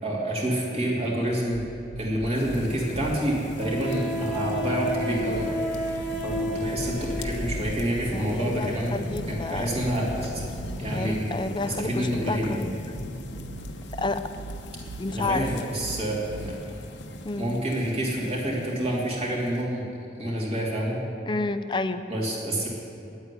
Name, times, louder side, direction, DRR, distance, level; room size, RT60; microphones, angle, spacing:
voice 1, 0.0-1.6 2.0-5.5 6.2-9.0 9.3-10.3 10.8-11.3 11.6-12.6 15.1-16.5 17.4-19.9 20.2-21.0 22.1-22.7, right 1 dB, 35° right, -4 dB, 2.9 m, -28 dB
sound 1, 1.3-3.2 5.1-7.0 8.9-10.8 12.7-16.5, right 3 dB, 60° right, 0.5 m, -42 dB
sound 2, 2.3-19.6, left 1 dB, 80° left, 1.0 m, -38 dB
Wind instrument woodwind instrument, 3.6-7.7, equal, 5° left, 1.7 m, -31 dB
voice 2, 8.1-9.7 10.9-12.7 14.0-14.2 15.0-15.5 17.2-17.5 21.3-22.0, left 3 dB, 25° left, 10 dB, 0.5 m, -30 dB
9.8 x 8.6 x 9.9 m, 2.8 s
head